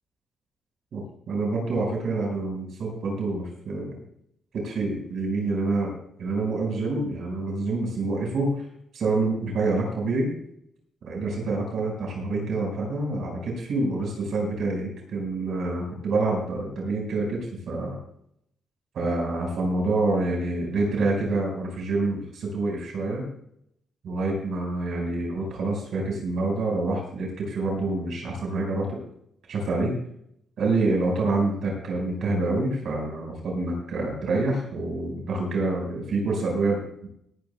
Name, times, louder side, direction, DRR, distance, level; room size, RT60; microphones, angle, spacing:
voice 1, 1.3-4.0 4.5-5.9 6.2-8.6 8.9-10.3 11.0-18.0 18.9-23.2 24.0-29.0 29.5-30.0 30.6-37.1, right 2 dB, 55° right, 0 dB, 5.1 m, -27 dB
18.5 x 13.5 x 2.3 m, 0.73 s
wide cardioid pair, 175°, 0 cm